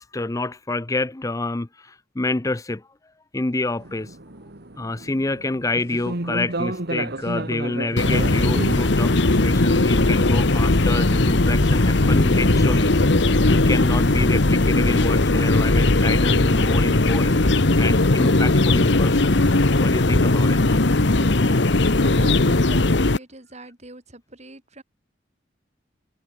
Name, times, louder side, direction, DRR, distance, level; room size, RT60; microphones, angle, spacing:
voice 1, 0.0-2.9 3.3-4.2 4.8-12.9 13.2-17.4 17.8-19.4 19.8-20.8, left 2 dB, 20° left, 0.6 m, -28 dB
sound 1, 3.8-21.1, right 2 dB, 60° right, 2.1 m, -36 dB
sound 2, 8.0-23.2, left 2 dB, 65° left, 1.3 m, -18 dB
voice 2, 21.2-24.8, right 2 dB, 35° right, 5.2 m, -42 dB
head